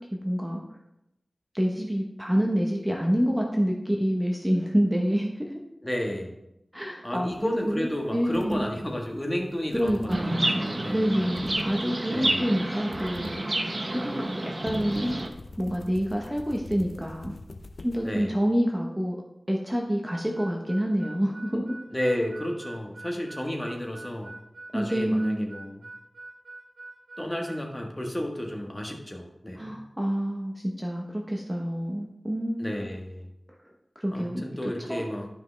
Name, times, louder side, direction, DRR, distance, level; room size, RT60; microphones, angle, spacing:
voice 1, 0.1-0.6 1.5-5.6 6.7-8.7 9.7-15.2 15.6-17.3 17.8-19.2 19.5-21.8 24.7-25.5 29.6-32.7 33.9-35.0, equal, 10° right, 0 dB, 1.0 m, -27 dB
voice 2, 5.8-6.3 7.0-11.1 12.1-12.4 18.0-18.3 21.9-24.3 24.7-25.8 27.2-29.7 32.6-33.3 34.1-35.3, left 1 dB, 20° left, 1 dB, 1.5 m, -32 dB
sound 1, 7.3-18.2, left 2 dB, 65° left, 0.5 m, -46 dB
Chirp tweet, 10.1-15.3, right 1 dB, 40° right, 0.9 m, -30 dB
Harmonica, 20.0-27.6, right 2 dB, 60° right, 2.7 m, -45 dB
12.0 x 5.3 x 3.4 m, 0.85 s
wide cardioid pair, 70°, 0 cm